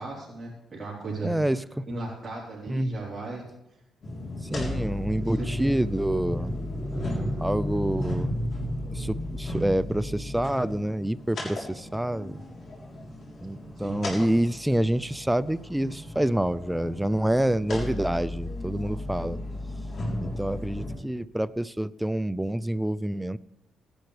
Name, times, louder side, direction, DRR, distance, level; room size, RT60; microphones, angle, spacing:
voice 1, 0.0-1.3 1.9-3.4 5.2-5.7 6.9-7.3 13.8-14.3, right 3 dB, 20° right, -7 dB, 3.8 m, -36 dB
voice 2, 1.2-1.9 2.7-3.0 4.5-6.5 7.4-8.4 8.6-12.4 13.4-19.4 20.2-23.4, right 1 dB, 5° right, 16 dB, 0.3 m, -27 dB
sound 1, 4.0-20.9, left 1 dB, 50° left, 3.5 m, -34 dB
18.0 x 10.5 x 3.3 m, 0.88 s
cardioid pair, 90°, 0 cm